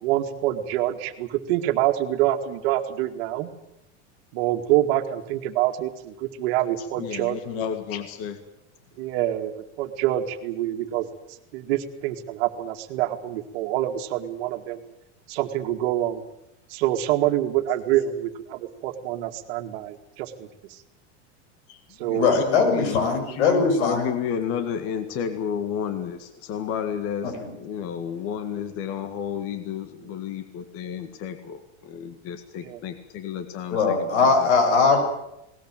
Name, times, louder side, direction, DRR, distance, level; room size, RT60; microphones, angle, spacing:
voice 1, 0.0-3.5 4.3-7.6 9.0-11.1 11.5-14.8 15.3-16.2 16.7-20.5 22.0-22.3 30.0-30.1 32.6-32.8, right 13 dB, 60° right, 7 dB, 2.3 m, -26 dB
voice 2, 6.8-8.4 21.7-34.1, left 8 dB, 40° left, 9 dB, 1.9 m, -32 dB
voice 3, 22.1-24.1 27.2-27.5 33.7-35.0, left 4 dB, 80° left, 6 dB, 7.1 m, -21 dB
20.5 x 19.5 x 9.1 m, 0.87 s
supercardioid pair, 160°, 34 cm